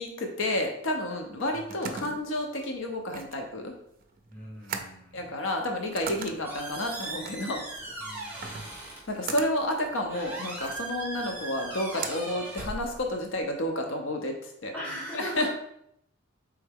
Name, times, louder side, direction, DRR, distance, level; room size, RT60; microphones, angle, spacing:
voice 1, 0.0-3.7 5.1-7.6 9.1-14.7 15.1-15.5, left 1 dB, 75° left, 3 dB, 0.7 m, -30 dB
sound 1, 1.2-13.2, right 5 dB, 45° right, 0.4 m, -42 dB
voice 2, 1.5-2.1 4.3-5.4 8.0-8.8 14.7-15.5, equal, 10° left, -5 dB, 1.2 m, -41 dB
Squeak, 5.9-13.4, right 2 dB, 10° right, 1.3 m, -40 dB
4.3 x 3.4 x 3.5 m, 0.74 s
head